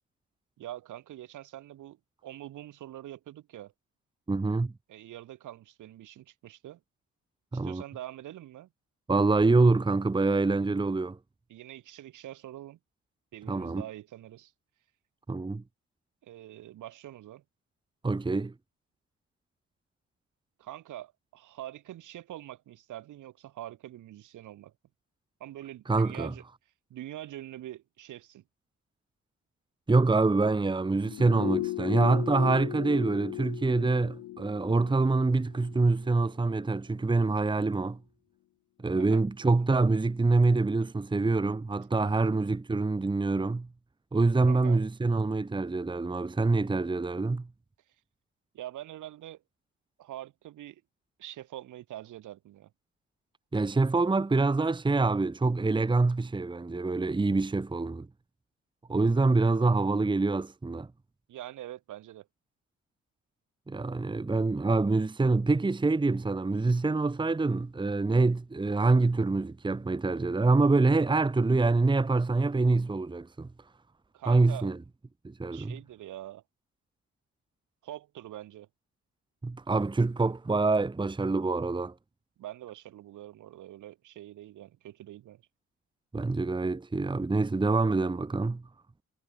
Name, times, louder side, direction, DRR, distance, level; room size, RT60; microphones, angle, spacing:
voice 1, 0.6-2.0 2.2-3.7 4.9-6.8 7.5-8.7 11.5-12.8 13.3-14.5 16.2-17.4 20.6-24.7 25.4-26.4 26.9-28.4 38.9-39.2 42.0-42.3 44.5-44.8 48.5-49.4 50.0-50.8 51.2-52.7 61.3-62.3 74.1-74.7 75.5-76.4 77.8-78.7 82.4-85.4, right 13 dB, 80° right, 6.6 m, -44 dB
voice 2, 4.3-4.7 7.5-7.8 9.1-11.2 13.5-13.8 15.3-15.6 18.0-18.5 25.9-26.3 29.9-38.0 38.8-43.7 44.1-47.5 53.5-58.1 58.9-60.9 63.7-73.5 74.3-74.8 75.2-75.8 79.4-81.9 86.1-88.6, right 3 dB, 15° right, 1.3 m, -26 dB
sound 1, 31.1-36.3 36.6-36.7, left 16 dB, 80° left, 0.8 m, -36 dB
cardioid pair, 90°, 30 cm